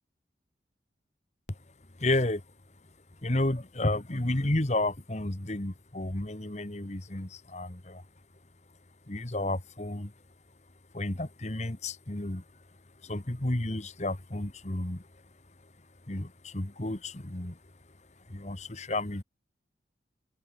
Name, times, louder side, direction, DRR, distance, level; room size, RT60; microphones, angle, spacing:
voice 1, 2.0-2.4 3.2-7.7 9.1-10.1 10.9-12.4 13.1-15.0 16.1-16.3 16.5-17.0 17.3-17.5 18.4-19.2, left 1 dB, 35° left, 1.5 m, -31 dB
open air
head